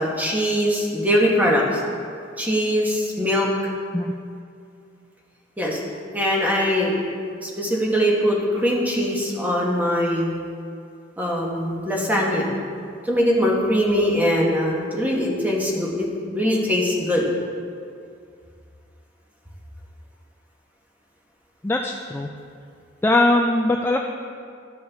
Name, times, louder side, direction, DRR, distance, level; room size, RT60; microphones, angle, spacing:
voice 1, 0.0-1.8 2.4-3.5 5.6-5.8 6.1-6.9 7.4-10.3 11.2-12.5 13.0-17.3, equal, 10° right, -3 dB, 1.4 m, -22 dB
voice 2, 21.6-22.3 23.0-24.0, left 2 dB, 10° left, 2 dB, 0.3 m, -20 dB
12.5 x 6.4 x 3.5 m, 2.3 s
head